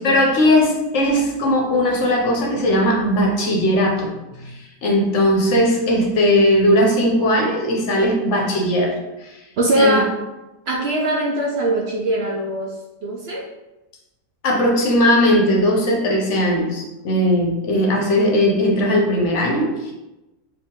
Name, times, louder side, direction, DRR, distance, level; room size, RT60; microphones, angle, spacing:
voice 1, 0.0-8.9 9.2-9.3 9.8-10.0 14.4-19.9, left 1 dB, 55° left, 0 dB, 0.9 m, -18 dB
voice 2, 9.6-10.1 10.7-12.7 13.0-13.4, right 1 dB, 70° right, -1 dB, 0.6 m, -21 dB
4.9 x 2.7 x 3.7 m, 0.99 s
omnidirectional pair, 1.8 m